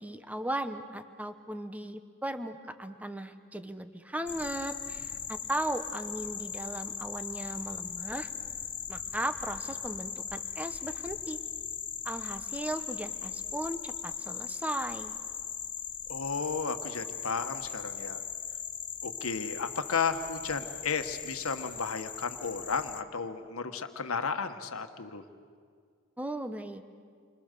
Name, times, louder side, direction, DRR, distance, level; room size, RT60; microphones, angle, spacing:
voice 1, 0.0-8.3 8.9-11.4 12.0-15.1 26.2-26.9, right 1 dB, 5° right, 9 dB, 1.0 m, -37 dB
sound 1, 4.3-23.0, left 7 dB, 25° left, 0.8 m, -39 dB
voice 2, 16.1-18.2 19.0-25.2, left 5 dB, 90° left, 8 dB, 1.4 m, -33 dB
29.0 x 24.5 x 6.8 m, 2.1 s
head